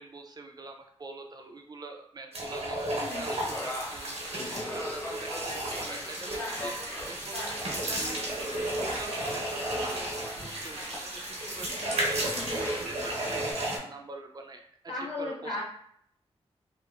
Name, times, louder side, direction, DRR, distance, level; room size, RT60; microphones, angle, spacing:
voice 1, 0.0-14.6 14.9-15.6, right 3 dB, 40° right, 3 dB, 0.3 m, -44 dB
sound 1, 2.3-13.8, right 1 dB, 80° right, 0.8 m, -33 dB
voice 2, 2.9-3.2 4.3-4.7 12.3-12.6 14.9-15.6, left 2 dB, 75° left, -5 dB, 1.1 m, -37 dB
sound 2, 3.1-13.5, left 1 dB, 25° left, 0.5 m, -41 dB
2.8 x 2.4 x 2.4 m, 0.68 s
wide cardioid pair, 145°, 11 cm